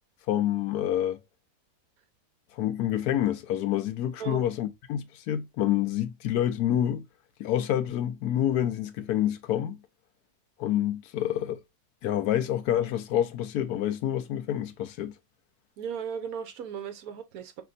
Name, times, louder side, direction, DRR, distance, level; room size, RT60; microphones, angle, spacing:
voice 1, 0.3-1.2 2.5-7.0 7.4-9.8 10.6-11.6 12.0-15.2, left 11 dB, 80° left, 1.1 m, -27 dB
voice 2, 15.8-17.6, right 7 dB, 70° right, 1.2 m, -36 dB
5.2 x 3.4 x 2.4 m
omnidirectional pair, 1.7 m